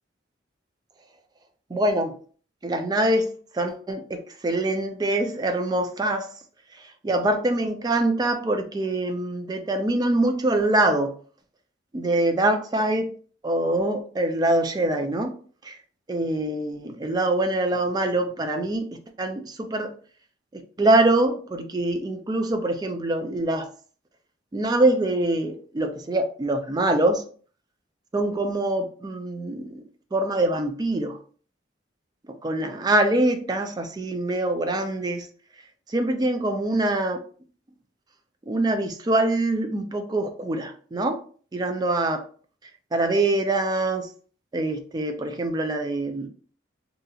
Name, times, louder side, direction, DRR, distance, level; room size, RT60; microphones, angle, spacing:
voice 1, 1.7-2.2 2.6-6.3 7.0-11.1 11.9-13.1 13.4-15.4 15.6-15.8 16.1-19.9 20.5-23.7 24.5-27.2 28.1-29.8 30.1-31.2 32.3-35.3 35.9-37.2 38.5-41.2 41.5-42.2 42.9-44.1 44.5-46.3, right 1 dB, 20° right, 0.3 m, -24 dB
2.7 x 2.4 x 2.7 m
head